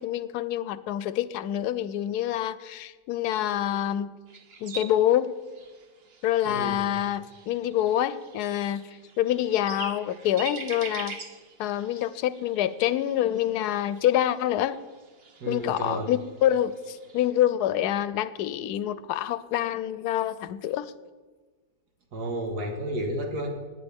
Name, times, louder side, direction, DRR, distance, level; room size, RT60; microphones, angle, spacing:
voice 1, 0.0-4.1 4.6-5.3 6.2-8.8 9.2-11.2 11.6-14.8 15.5-20.9, left 11 dB, 80° left, 16 dB, 1.1 m, -26 dB
sound 1, 4.3-17.3, right 5 dB, 45° right, 1.0 m, -44 dB
voice 2, 6.5-6.8 15.4-16.1 22.1-23.5, right 1 dB, 85° right, 3 dB, 2.1 m, -32 dB
18.0 x 9.6 x 3.5 m, 1.4 s
omnidirectional pair, 1.7 m